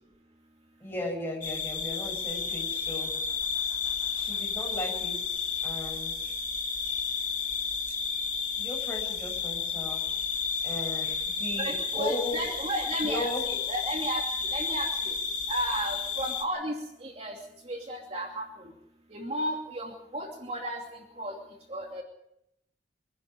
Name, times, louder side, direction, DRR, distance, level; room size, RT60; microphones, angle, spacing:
voice 1, 0.8-3.1 4.1-6.3 8.6-10.0 10.6-12.5 13.0-13.4, left 1 dB, 15° left, -1 dB, 7.9 m, -36 dB
sound 1, 1.4-16.4, left 5 dB, 45° left, 2.5 m, -32 dB
voice 2, 11.6-14.2 14.5-15.1 15.5-17.4 17.6-18.7 19.1-21.4 21.7-22.0, right 1 dB, 35° right, 0 dB, 2.8 m, -34 dB
25.5 x 11.0 x 9.9 m, 0.84 s
head